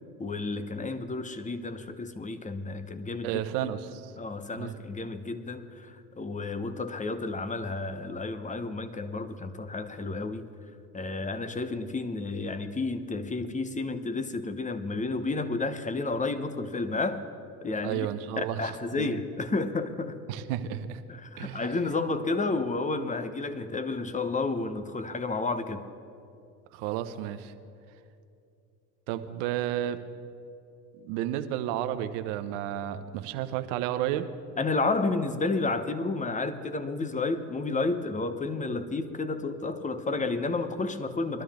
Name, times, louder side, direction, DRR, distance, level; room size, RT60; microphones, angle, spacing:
voice 1, 0.2-3.7 4.2-10.5 10.9-17.2 17.6-18.1 18.4-20.2 21.1-25.9 34.6-41.4, left 3 dB, 15° left, 11 dB, 0.9 m, -31 dB
voice 2, 3.2-4.1 4.6-4.8 17.8-18.7 19.0-19.1 20.3-21.0 21.4-21.7 26.7-27.5 29.1-30.0 31.0-34.3, right 11 dB, 60° right, 10 dB, 1.0 m, -32 dB
21.5 x 12.5 x 3.6 m, 2.6 s
hypercardioid pair, 70°, 48 cm